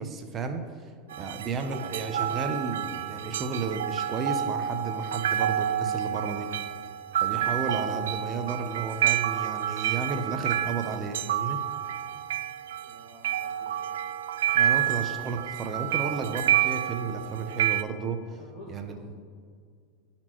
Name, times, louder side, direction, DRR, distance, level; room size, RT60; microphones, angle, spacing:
voice 1, 0.0-6.5 7.2-11.6 14.5-18.4 18.7-19.0, right 4 dB, 30° right, 6 dB, 0.6 m, -33 dB
sound 1, 1.1-17.8, right 11 dB, 85° right, 0.3 m, -29 dB
voice 2, 12.8-13.9 18.4-19.0, left 1 dB, 35° left, -7 dB, 1.7 m, -49 dB
12.0 x 4.3 x 3.0 m, 2.1 s
hypercardioid pair, 110°, 0 cm